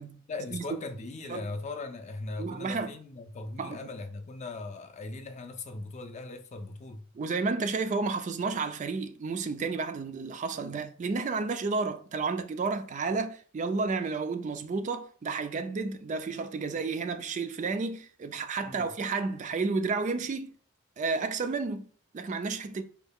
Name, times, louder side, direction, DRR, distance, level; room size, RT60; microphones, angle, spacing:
voice 1, 0.3-7.0 18.6-18.9, left 3 dB, 35° left, 0.5 m, -39 dB
voice 2, 2.4-2.9 3.6-3.8 7.1-20.5 21.0-21.9 22.1-22.8, right 4 dB, 35° right, 0.3 m, -31 dB
4.4 x 2.3 x 3.5 m
head